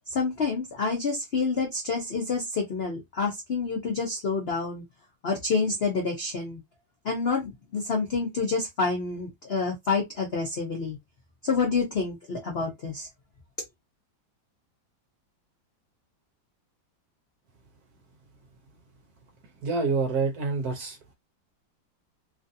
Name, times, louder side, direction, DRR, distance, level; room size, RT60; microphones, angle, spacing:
voice 1, 0.1-4.8 5.2-6.6 7.0-11.0 11.4-13.1, left 4 dB, 65° left, 0.6 m, -28 dB
voice 2, 19.6-21.1, right 4 dB, 65° right, 1.0 m, -27 dB
3.1 x 2.6 x 2.6 m
omnidirectional pair, 2.1 m